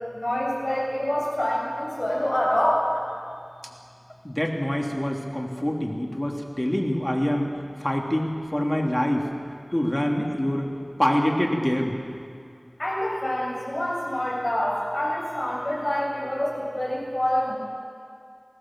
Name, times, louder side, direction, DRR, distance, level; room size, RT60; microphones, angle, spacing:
voice 1, 0.0-2.9 12.8-17.5, left 1 dB, 45° left, -5 dB, 7.5 m, -26 dB
voice 2, 4.2-7.5 7.8-9.3 9.7-10.7 11.0-12.0, equal, 25° left, 0 dB, 3.0 m, -25 dB
21.5 x 17.0 x 7.5 m, 2.3 s
wide cardioid pair, 45°, 0 cm